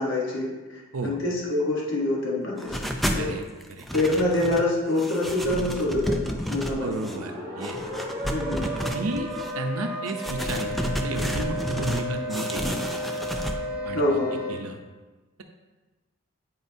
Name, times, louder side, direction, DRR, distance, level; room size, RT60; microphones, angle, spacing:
voice 1, 0.0-2.8 3.1-3.4 3.9-7.0 8.3-8.6 13.9-14.4, left 1 dB, 60° left, -3 dB, 1.2 m, -26 dB
sound 1, 2.6-3.3 3.6-4.7 5.0-7.2 7.6-9.5 10.1-12.0 12.3-13.6, equal, ahead, 0.3 m, -31 dB
sound 2, 6.1-14.5, equal, 20° right, 1.6 m, -33 dB
voice 2, 6.8-7.8 8.6-9.3 9.5-12.9 13.8-14.0 14.5-14.8, right 2 dB, 85° right, 4 dB, 0.7 m, -32 dB
9.5 x 4.4 x 2.7 m, 1.2 s
head